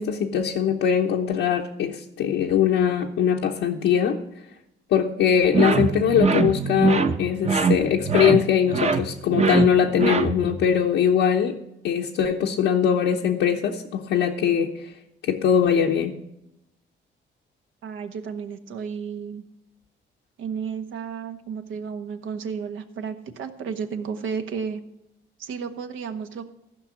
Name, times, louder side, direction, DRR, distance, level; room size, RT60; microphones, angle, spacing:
voice 1, 0.0-4.2 4.9-11.6 11.8-14.9 15.2-16.2, left 8 dB, 85° left, 0 dB, 1.0 m, -21 dB
sound 1, 5.5-10.7, right 5 dB, 35° right, 0.9 m, -23 dB
voice 2, 17.8-19.4 20.4-24.8 25.4-26.5, right 6 dB, 80° right, 7 dB, 1.3 m, -32 dB
15.0 x 5.7 x 7.2 m, 0.84 s
cardioid pair, 90°, 20 cm